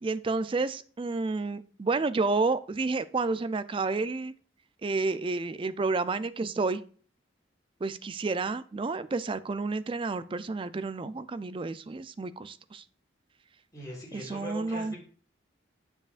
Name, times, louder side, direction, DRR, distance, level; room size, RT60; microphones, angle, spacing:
voice 1, 0.0-4.3 4.8-6.8 7.8-12.8 14.1-14.9, right 3 dB, 30° right, 15 dB, 0.4 m, -30 dB
voice 2, 13.7-15.0, equal, 20° left, -4 dB, 4.0 m, -40 dB
7.9 x 7.2 x 2.5 m, 0.44 s
head